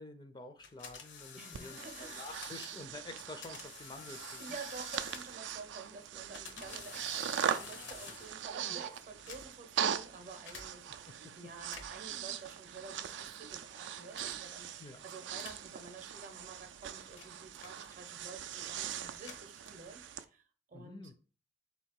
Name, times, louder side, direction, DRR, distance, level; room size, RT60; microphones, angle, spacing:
voice 1, 0.0-4.6 6.6-6.8 11.2-11.3 14.8-15.0 20.7-21.1, left 2 dB, 25° left, 0.4 m, -49 dB
sound 1, 0.6-2.9 3.4-5.5 6.1-8.5 9.1-9.7 10.5-10.7 11.6-12.1 13.0-13.3 14.1-14.5 15.3-15.7 16.5-18.2 19.0-20.0, left 6 dB, 90° left, 0.8 m, -50 dB
voice 2, 1.3-2.5 4.4-21.2, right 4 dB, 45° right, 0.7 m, -50 dB
Breathing, 1.5-20.2, right 9 dB, 75° right, 0.4 m, -41 dB
4.1 x 2.7 x 4.5 m
head